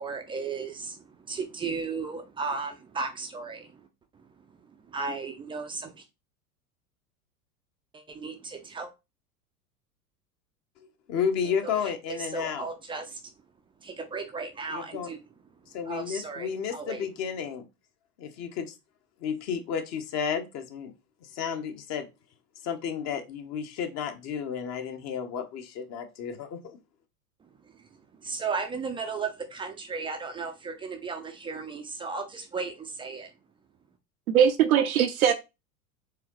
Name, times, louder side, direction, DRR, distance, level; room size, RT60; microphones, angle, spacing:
voice 1, 0.0-3.9 4.1-6.0 7.9-8.9 11.4-11.7 12.1-13.2 13.8-15.2 15.9-17.1 27.4-33.3, right 4 dB, 10° right, 0.4 m, -35 dB
voice 2, 11.1-12.7 14.7-15.1 15.7-17.7 18.2-18.8 19.2-20.9 21.3-22.1 22.6-26.8, left 7 dB, 35° left, 0.9 m, -32 dB
voice 3, 34.3-35.3, right 9 dB, 65° right, 0.6 m, -20 dB
4.9 x 3.5 x 3.0 m
figure-of-eight pair, 85°, 46 cm